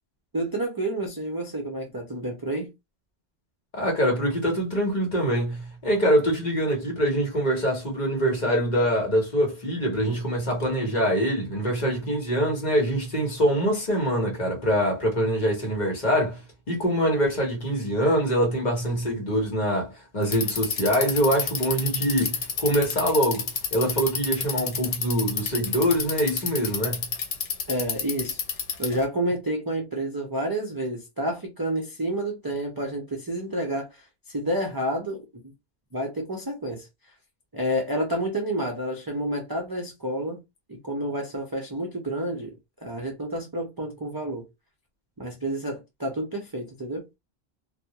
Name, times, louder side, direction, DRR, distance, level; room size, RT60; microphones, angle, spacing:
voice 1, 0.3-2.7 27.7-28.4 28.8-35.4 35.9-36.9 37.5-40.4 40.7-44.4 45.2-47.0, right 1 dB, 35° right, 0.3 m, -29 dB
voice 2, 3.7-16.4 16.7-27.1, equal, 45° left, 1.0 m, -24 dB
Bicycle, 20.2-29.0, left 6 dB, 75° left, 0.9 m, -29 dB
2.2 x 2.1 x 2.7 m
omnidirectional pair, 1.1 m